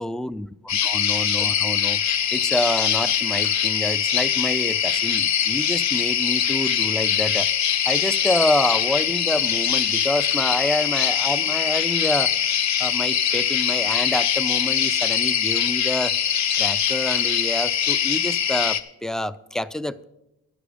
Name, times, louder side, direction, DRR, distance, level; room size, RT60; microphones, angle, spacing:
voice 1, 0.0-2.0 2.3-7.5 7.9-12.3 12.8-16.1 16.5-20.1, left 1 dB, ahead, 15 dB, 0.3 m, -27 dB
sound 1, 0.7-18.8, left 9 dB, 65° left, 0.8 m, -22 dB
11.0 x 10.0 x 5.2 m, 0.89 s
cardioid pair, 90°, 30 cm